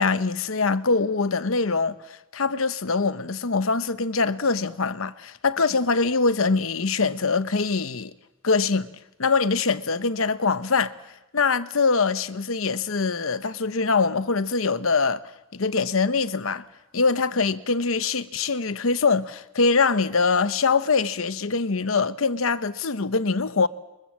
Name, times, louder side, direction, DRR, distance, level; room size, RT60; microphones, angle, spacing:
voice 1, 0.0-8.1 8.4-8.9 9.2-10.9 11.3-16.6 16.9-23.7, left 4 dB, 75° left, 1.0 m, -23 dB
28.5 x 23.0 x 7.5 m
head